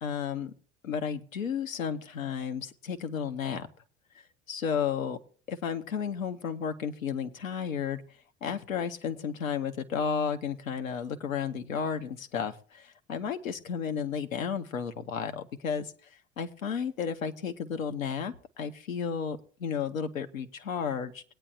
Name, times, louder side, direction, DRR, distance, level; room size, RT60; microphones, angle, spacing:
voice 1, 0.0-0.5 0.8-3.7 4.5-5.2 5.5-8.0 8.4-21.2, left 7 dB, 85° left, 7 dB, 0.9 m, -33 dB
19.5 x 9.0 x 2.7 m, 0.42 s
hypercardioid pair, 75°, 39 cm